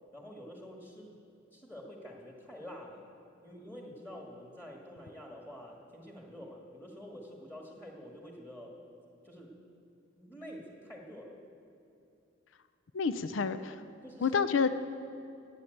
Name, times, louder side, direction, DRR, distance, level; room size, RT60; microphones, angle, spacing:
voice 1, 0.1-1.2 1.5-3.1 3.4-8.8 9.2-9.6 10.2-11.4 14.0-14.4, equal, 10° left, -1 dB, 1.8 m, -47 dB
voice 2, 12.9-13.8 14.2-14.7, left 5 dB, 90° left, 12 dB, 0.6 m, -28 dB
17.5 x 8.7 x 7.9 m, 2.7 s
head